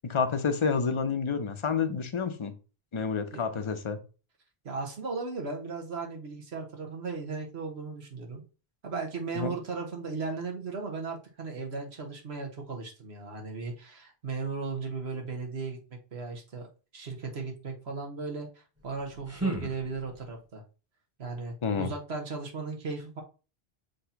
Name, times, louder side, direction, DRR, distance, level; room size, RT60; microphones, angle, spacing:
voice 1, 0.0-2.5 2.9-4.0 9.3-9.5 21.6-21.9, left 5 dB, 35° left, 0.7 m, -29 dB
voice 2, 4.6-8.4 8.8-15.8 16.1-16.7 16.9-20.6 21.2-23.2, right 4 dB, 90° right, 1.6 m, -36 dB
sound 1, 18.8-20.4, right 2 dB, 15° right, 1.0 m, -36 dB
6.4 x 3.0 x 5.7 m
omnidirectional pair, 1.1 m